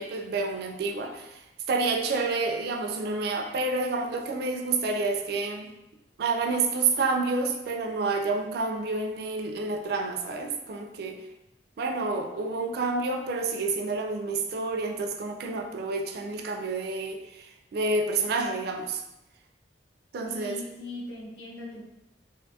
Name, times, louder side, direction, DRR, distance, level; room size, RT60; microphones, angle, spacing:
voice 1, 0.0-1.4 1.7-5.7 6.2-11.2 11.8-19.0 20.1-20.6, right 3 dB, 60° right, 5 dB, 0.3 m, -29 dB
voice 2, 20.2-21.8, left 2 dB, 80° left, -1 dB, 0.6 m, -40 dB
2.5 x 2.2 x 2.7 m, 0.93 s
head